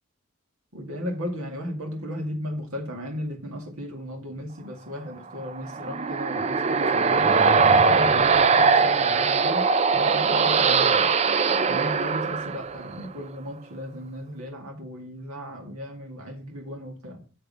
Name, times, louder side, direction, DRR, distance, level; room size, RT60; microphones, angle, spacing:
voice 1, 0.7-7.3 7.8-9.6 9.9-11.1 11.7-17.2, equal, 85° right, 2.1 m, -35 dB
sound 1, 5.5-13.1, right 5 dB, 30° right, 0.4 m, -21 dB
7.0 x 6.4 x 5.5 m
head